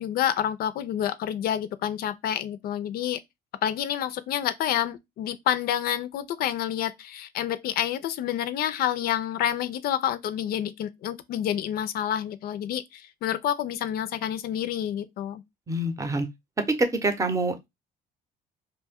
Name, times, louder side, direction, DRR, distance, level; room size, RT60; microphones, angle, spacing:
voice 1, 0.0-3.2 3.6-15.4, left 10 dB, 65° left, 0.4 m, -28 dB
voice 2, 15.7-16.3 16.7-17.7, right 2 dB, 20° right, 0.7 m, -26 dB
2.8 x 2.2 x 3.4 m
cardioid pair, 110°, 17 cm